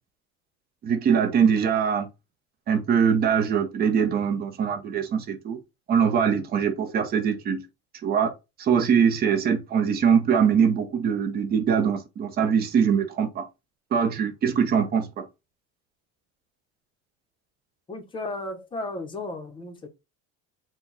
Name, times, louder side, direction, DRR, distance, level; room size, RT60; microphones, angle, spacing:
voice 1, 0.8-2.1 2.7-5.6 5.9-7.7 8.0-8.3 8.6-13.5 13.9-15.2, right 7 dB, 30° right, 0.8 m, -22 dB
voice 2, 17.9-19.9, left 2 dB, 15° left, 0.8 m, -34 dB
4.5 x 2.3 x 4.0 m
cardioid pair, 160°, 32 cm